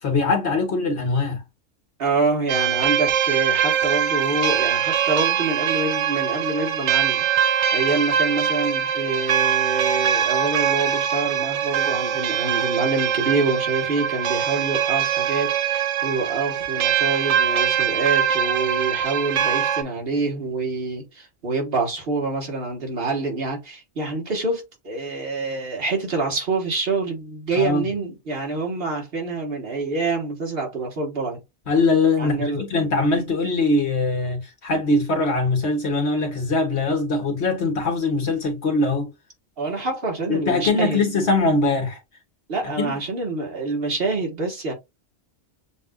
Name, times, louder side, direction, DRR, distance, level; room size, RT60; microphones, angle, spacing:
voice 1, 0.0-1.4 27.5-27.9 31.7-39.1 40.3-42.0 42.8-42.9, left 3 dB, 65° left, 1.6 m, -22 dB
voice 2, 2.0-7.2 7.7-31.4 32.2-32.7 39.6-41.0 42.5-44.7, right 3 dB, 55° right, 1.5 m, -26 dB
sound 1, 2.5-19.8, right 9 dB, 75° right, 1.0 m, -22 dB
7.1 x 2.5 x 2.2 m
omnidirectional pair, 1.2 m